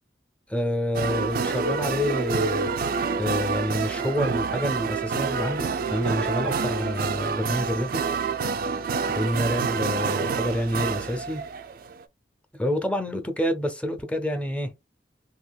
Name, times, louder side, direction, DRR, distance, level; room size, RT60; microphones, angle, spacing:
voice 1, 0.5-2.8 3.2-8.0 9.1-11.4 12.5-14.7, equal, 5° left, 0.6 m, -28 dB
sound 1, 0.9-12.0, right 5 dB, 55° right, 0.4 m, -28 dB
3.7 x 2.8 x 2.3 m
head